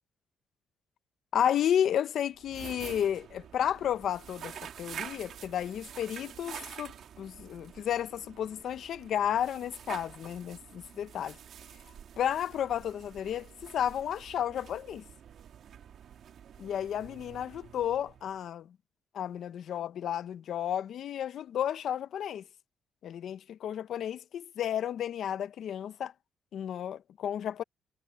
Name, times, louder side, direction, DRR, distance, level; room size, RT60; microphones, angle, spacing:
voice 1, 1.3-11.4 12.2-15.0 16.6-18.7 19.1-22.4 23.0-26.1 26.5-27.6, left 10 dB, 70° left, 0.9 m, -32 dB
sound 1, 2.3-18.5, right 9 dB, 65° right, 2.6 m, -48 dB
cardioid pair, 90°, 0 cm